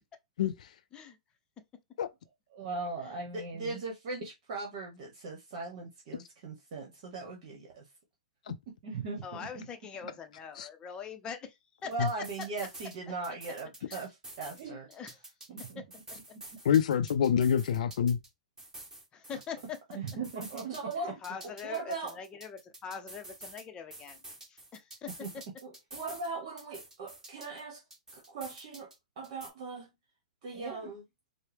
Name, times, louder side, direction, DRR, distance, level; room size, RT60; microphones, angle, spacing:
voice 1, 2.5-7.8 8.8-9.6 11.9-14.1 14.4-14.9 15.5-15.8 19.9-21.2 21.6-22.2 25.2-25.3 25.9-27.8 28.1-29.9 30.4-31.0, right 4 dB, 55° right, 1.2 m, -39 dB
voice 2, 9.2-12.5 13.3-13.4 13.9-14.1 14.9-15.2 15.8-15.9 19.1-19.8 21.2-24.2 24.5-25.4, left 6 dB, 20° left, 0.7 m, -43 dB
sound 1, 11.9-13.0 13.2-14.6 14.9-18.3 18.6-21.0 21.2-23.6 23.9-26.3 26.6-29.0 29.2-29.5, right 1 dB, 10° right, 1.5 m, -48 dB
voice 3, 16.7-18.2, left 8 dB, 70° left, 0.4 m, -26 dB
4.4 x 2.1 x 3.4 m
hypercardioid pair, 125°, 4 cm